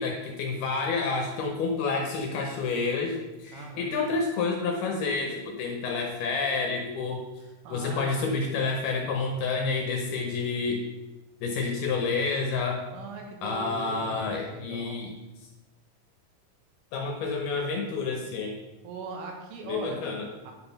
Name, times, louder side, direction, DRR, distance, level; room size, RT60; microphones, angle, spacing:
voice 1, 0.0-7.2 7.7-10.8 11.4-12.8 13.4-15.1 16.9-18.6 19.6-20.3, left 4 dB, 70° left, 1 dB, 2.6 m, -29 dB
voice 2, 3.5-4.1 7.6-8.1 12.9-15.0 18.8-20.0 20.3-20.5, right 3 dB, 90° right, 2 dB, 4.0 m, -40 dB
10.5 x 5.1 x 5.7 m, 1.1 s
omnidirectional pair, 5.5 m